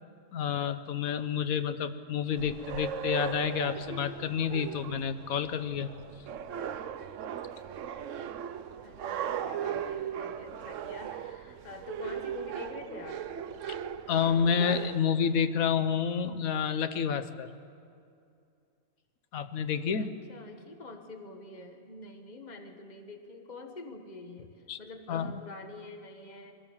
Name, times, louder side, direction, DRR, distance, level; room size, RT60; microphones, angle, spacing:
voice 1, 0.3-5.9 14.1-17.5 19.3-20.2 24.7-24.8 25.1-25.4, left 7 dB, 90° left, 11 dB, 1.3 m, -29 dB
sound 1, 2.4-15.0, right 8 dB, 70° right, 1.0 m, -38 dB
voice 2, 8.8-13.2 20.0-26.5, left 3 dB, 35° left, 5 dB, 1.5 m, -46 dB
22.0 x 17.0 x 7.2 m, 2.4 s
omnidirectional pair, 1.4 m